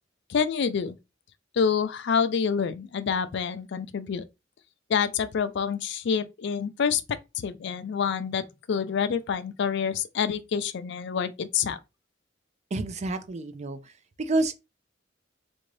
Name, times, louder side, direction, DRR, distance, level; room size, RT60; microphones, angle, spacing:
voice 1, 0.3-0.9 1.5-4.2 4.9-11.8, left 6 dB, 65° left, 0.4 m, -27 dB
voice 2, 12.7-13.9 14.2-14.6, right 2 dB, 35° right, 0.4 m, -29 dB
3.5 x 2.6 x 3.2 m
head